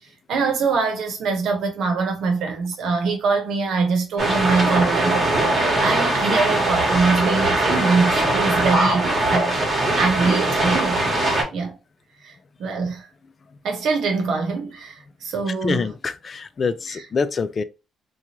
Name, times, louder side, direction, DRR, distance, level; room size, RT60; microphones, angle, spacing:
voice 1, 0.3-5.3 5.8-11.8 12.2-13.1 13.6-15.9 16.9-17.1, right 4 dB, 75° right, 0.9 m, -24 dB
sound 1, 4.2-11.4, right 1 dB, 35° right, 1.2 m, -21 dB
voice 2, 15.6-17.6, left 5 dB, 40° left, 0.3 m, -25 dB
2.8 x 2.3 x 2.9 m
cardioid pair, 90°, 0 cm